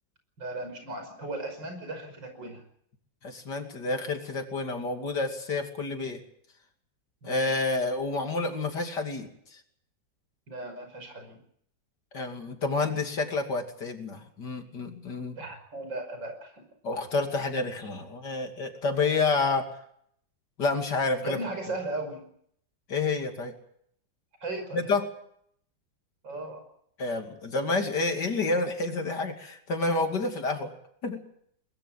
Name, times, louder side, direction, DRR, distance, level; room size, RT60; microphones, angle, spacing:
voice 1, 0.4-2.6 7.2-7.5 10.5-11.4 15.4-16.6 21.2-22.2 24.4-24.9 26.2-26.6, right 2 dB, 80° right, 6 dB, 6.2 m, -36 dB
voice 2, 3.2-6.2 7.2-9.6 12.1-15.4 16.8-19.7 20.6-21.4 22.9-23.5 24.7-25.1 27.0-30.7 31.0-31.2, left 3 dB, 65° left, 4 dB, 3.4 m, -29 dB
22.5 x 21.0 x 7.5 m, 0.68 s
omnidirectional pair, 2.0 m